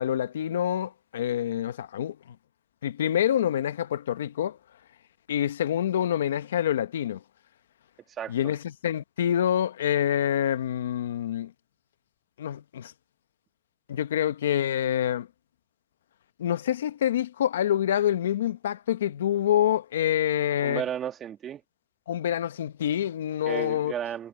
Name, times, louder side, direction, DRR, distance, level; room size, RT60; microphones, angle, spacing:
voice 1, 0.0-2.2 2.8-4.6 5.3-7.2 8.3-11.5 12.4-12.9 13.9-15.3 16.4-20.8 22.1-23.9, left 10 dB, 90° left, 1.0 m, -26 dB
voice 2, 8.1-8.5 20.6-21.6 23.5-24.3, right 9 dB, 40° right, 1.9 m, -34 dB
hypercardioid pair, 90°, 0 cm